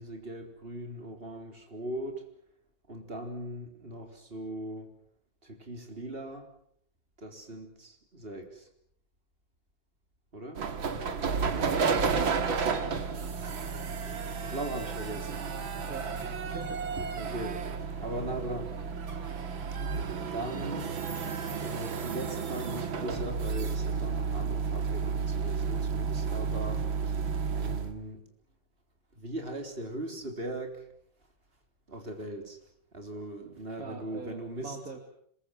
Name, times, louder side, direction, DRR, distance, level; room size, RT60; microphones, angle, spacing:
voice 1, 0.0-2.3 2.9-4.9 5.4-6.5 7.2-8.7 10.3-10.7 13.3-15.4 17.0-18.9 19.8-19.9 20.3-20.9 21.6-28.2 29.1-30.8 31.9-32.6 32.9-34.8, right 1 dB, 30° right, 4 dB, 4.1 m, -39 dB
sound 1, 10.6-27.9, right 5 dB, 80° right, 2.8 m, -32 dB
voice 2, 15.8-16.9 33.8-35.0, right 4 dB, 45° right, 3 dB, 2.8 m, -44 dB
26.5 x 22.0 x 7.6 m, 0.68 s
omnidirectional pair, 2.1 m